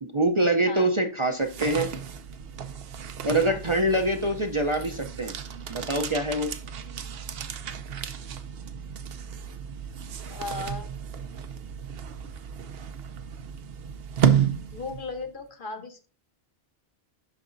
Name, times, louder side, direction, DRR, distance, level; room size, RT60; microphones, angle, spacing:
voice 1, 0.0-1.9 3.2-5.3 5.7-6.5, right 1 dB, 35° right, 5 dB, 0.6 m, -24 dB
sound 1, 1.2-15.3, right 8 dB, 70° right, 0.9 m, -32 dB
voice 2, 10.3-10.9 14.7-16.0, left 3 dB, 55° left, 5 dB, 1.2 m, -36 dB
11.5 x 4.1 x 2.6 m, 0.33 s
omnidirectional pair, 1.1 m